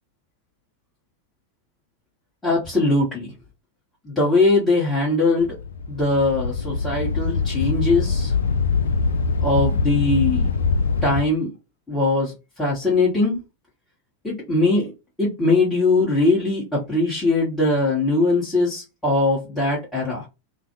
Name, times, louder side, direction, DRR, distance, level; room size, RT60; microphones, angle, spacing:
voice 1, 2.4-3.3 4.0-5.6 5.9-8.3 9.4-10.5 11.0-11.5 11.9-13.4 14.2-14.9 15.2-20.3, left 2 dB, 10° left, 1.0 m, -21 dB
sound 1, 5.4-11.2, left 4 dB, 65° left, 0.3 m, -23 dB
2.5 x 2.1 x 2.8 m
figure-of-eight pair, 90°, 0 cm